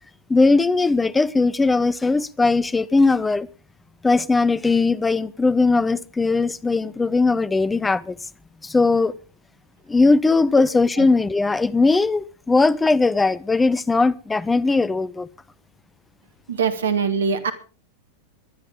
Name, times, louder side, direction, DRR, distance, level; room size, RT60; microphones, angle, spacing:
voice 1, 0.3-3.5 4.0-8.2 8.6-9.1 9.9-15.3, left 3 dB, 10° left, 0.7 m, -19 dB
voice 2, 16.5-17.5, right 6 dB, 65° right, 1.9 m, -22 dB
22.0 x 11.5 x 3.6 m
figure-of-eight pair, 90°, 0 cm